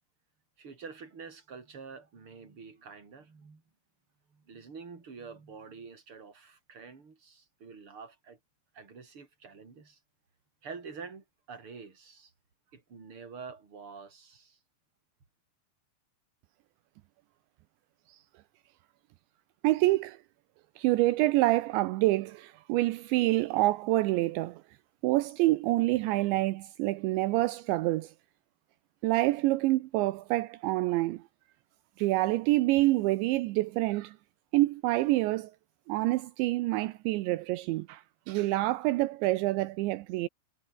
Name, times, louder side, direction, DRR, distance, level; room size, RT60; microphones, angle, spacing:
voice 1, 0.6-3.6 4.3-8.4 8.7-10.0 10.6-12.3 12.7-14.6, right 5 dB, 30° right, 4.8 m, -47 dB
voice 2, 19.6-20.2 20.8-24.6 25.0-28.1 29.0-31.2 32.0-34.2 34.5-35.5 35.9-40.3, right 18 dB, 80° right, 3.0 m, -27 dB
omnidirectional pair, 5.4 m